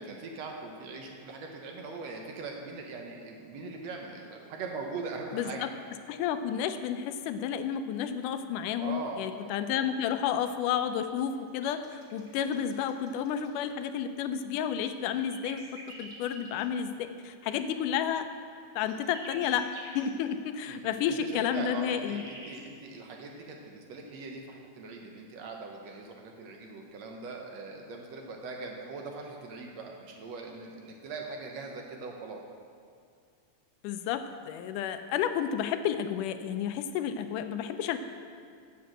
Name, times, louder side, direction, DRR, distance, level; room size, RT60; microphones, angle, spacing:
voice 1, 0.0-5.7 8.8-9.5 20.7-32.4, right 3 dB, 70° right, 1 dB, 1.9 m, -41 dB
voice 2, 5.3-5.7 6.1-15.6 16.0-18.3 18.8-22.2 33.8-38.0, left 8 dB, 85° left, 9 dB, 2.2 m, -31 dB
sound 1, 11.1-13.5 14.8-16.6 18.2-20.0 21.6-22.6, right 2 dB, 25° right, 1.9 m, -49 dB
9.4 x 7.0 x 7.7 m, 2.2 s
omnidirectional pair, 3.6 m